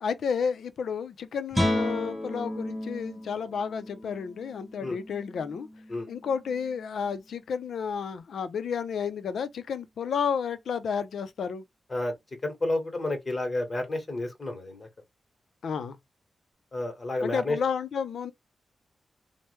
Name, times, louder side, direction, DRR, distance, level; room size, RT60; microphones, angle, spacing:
voice 1, 0.0-5.7 6.1-11.6 15.6-16.0 17.2-18.3, left 6 dB, 80° left, 0.5 m, -31 dB
Guitar, 1.5-7.1, left 1 dB, ahead, 1.0 m, -33 dB
voice 2, 12.4-14.9 16.7-17.6, left 2 dB, 30° left, 1.1 m, -30 dB
3.1 x 2.1 x 3.1 m
wide cardioid pair, 115°, 0 cm